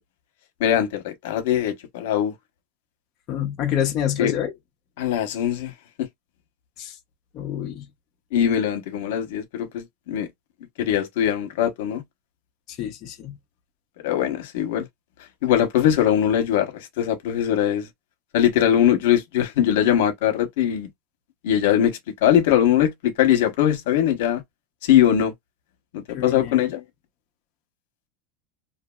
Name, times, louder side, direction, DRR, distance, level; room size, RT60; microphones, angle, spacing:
voice 1, 0.6-2.3 4.2-4.3 5.0-5.7 8.3-10.3 10.8-12.0 14.0-14.9 15.4-17.9 18.3-20.9 21.4-24.4 24.8-25.3 25.9-26.8, left 10 dB, 75° left, 0.9 m, -21 dB
voice 2, 3.3-4.5 6.8-7.0 7.3-7.9 12.7-13.4 26.1-26.6, left 10 dB, 35° left, 0.7 m, -27 dB
2.8 x 2.6 x 2.3 m
supercardioid pair, 160°, 0 cm